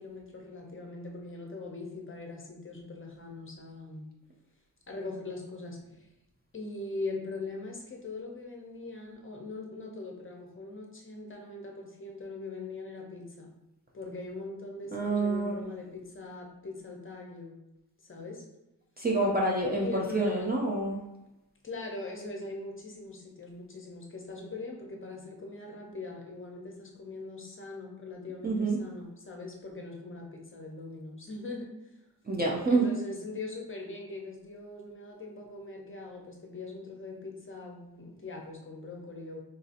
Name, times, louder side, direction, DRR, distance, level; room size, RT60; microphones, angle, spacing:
voice 1, 0.0-4.1 4.9-6.1 6.5-13.5 13.9-17.6 18.0-18.5 19.8-20.5 21.6-32.0 32.7-39.4, left 3 dB, 35° left, 0 dB, 0.6 m, -41 dB
voice 2, 14.9-15.6 19.0-21.0 28.4-28.8 32.3-32.9, right 2 dB, 25° right, -2 dB, 0.4 m, -27 dB
3.9 x 2.7 x 2.5 m, 0.93 s
wide cardioid pair, 155°, 38 cm